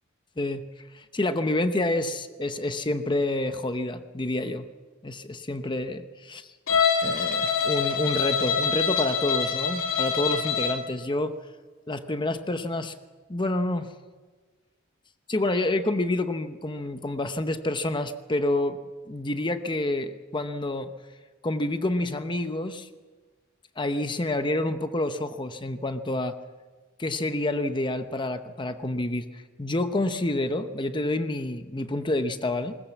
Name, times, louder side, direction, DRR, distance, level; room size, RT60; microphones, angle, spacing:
voice 1, 0.4-4.7 5.0-6.4 7.0-11.4 11.9-12.9 13.3-13.9 15.3-18.8 19.1-20.9 21.4-22.9 23.8-26.4 27.0-32.8, left 2 dB, 25° left, 9 dB, 0.8 m, -28 dB
Bowed string instrument, 6.7-10.9, left 6 dB, 80° left, 2.8 m, -25 dB
20.5 x 20.0 x 7.2 m, 1.4 s
head